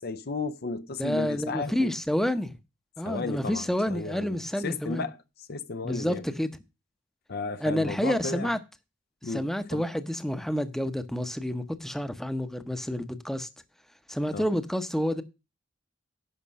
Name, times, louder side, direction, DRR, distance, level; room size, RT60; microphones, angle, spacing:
voice 1, 0.0-1.9 3.0-5.2 5.5-6.2 7.3-8.5 9.2-9.5 9.7-9.8 14.3-14.4, left 3 dB, 55° left, 0.6 m, -34 dB
voice 2, 1.0-2.6 3.0-5.1 5.8-6.5 7.6-8.6 9.2-13.5 14.1-15.2, equal, ahead, 0.8 m, -29 dB
11.0 x 5.1 x 6.2 m
head